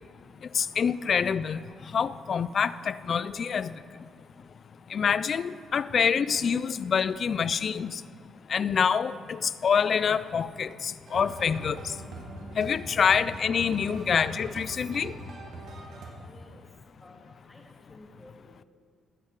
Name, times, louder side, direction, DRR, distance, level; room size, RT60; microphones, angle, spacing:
voice 1, 0.5-1.6 1.9-3.7 4.9-7.9 8.5-11.8 12.6-15.1, left 6 dB, 50° left, 17 dB, 0.4 m, -26 dB
sound 1, 11.1-16.1, right 2 dB, 65° right, 2.0 m, -42 dB
voice 2, 16.2-16.6 17.0-18.6, left 1 dB, 15° left, 1 dB, 2.0 m, -53 dB
18.5 x 7.5 x 4.7 m, 2.2 s
cardioid pair, 90°, 0 cm